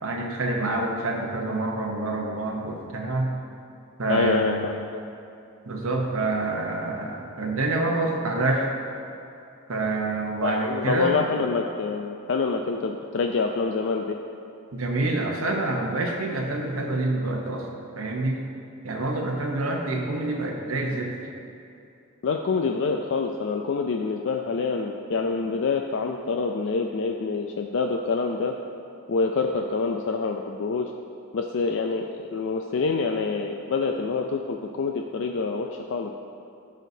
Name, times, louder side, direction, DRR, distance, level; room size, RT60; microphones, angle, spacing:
voice 1, 0.0-3.4 4.0-4.7 5.7-8.7 9.7-11.2 14.7-17.7 18.0-18.4 18.8-21.1, right 2 dB, 70° right, 0 dB, 0.9 m, -27 dB
voice 2, 4.1-5.0 10.4-14.2 22.2-28.5 29.1-30.9 31.3-36.1, left 4 dB, 55° left, 3 dB, 0.4 m, -26 dB
13.5 x 6.3 x 2.7 m, 2.6 s
head